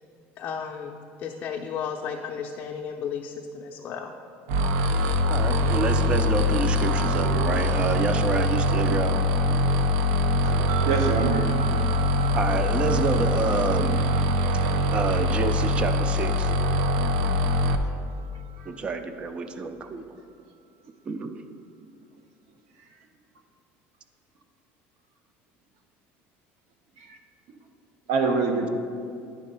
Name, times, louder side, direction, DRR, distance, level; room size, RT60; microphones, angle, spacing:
voice 1, 0.4-4.1, left 7 dB, 40° left, 1 dB, 0.4 m, -34 dB
sound 1, 4.5-17.8, left 1 dB, 85° right, 0.5 m, -23 dB
voice 2, 5.3-9.2 12.3-14.0 14.9-16.5 18.7-20.1 21.1-21.4, right 4 dB, 20° right, 9 dB, 0.4 m, -28 dB
voice 3, 10.4-11.5 18.6-18.7 27.1-27.2 28.1-28.7, right 4 dB, 65° right, 4 dB, 0.9 m, -26 dB
sound 2, 10.7-20.0, right 9 dB, 35° right, 1.2 m, -43 dB
9.8 x 3.7 x 5.4 m, 2.5 s
cardioid pair, 175°, 5 cm